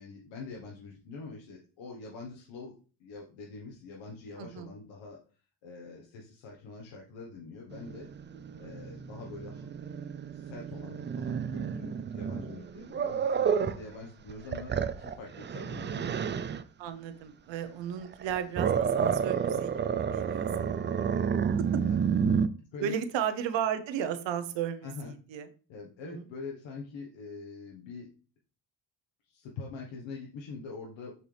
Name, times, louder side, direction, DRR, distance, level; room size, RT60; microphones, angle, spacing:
voice 1, 0.0-5.2 5.6-8.1 8.6-9.7 10.3-16.1 21.8-22.0 22.7-23.0 24.8-25.1 25.7-28.1 29.2-31.2, left 4 dB, 85° left, -1 dB, 1.4 m, -44 dB
voice 2, 4.4-4.7 8.5-8.7 16.8-20.9 22.8-25.5 26.1-26.2, right 9 dB, 80° right, 10 dB, 0.9 m, -34 dB
Growling, 7.7-13.8 14.3-16.6 18.0-22.5, right 7 dB, 25° right, 0.4 m, -30 dB
6.5 x 4.5 x 3.4 m, 0.37 s
cardioid pair, 85°, 44 cm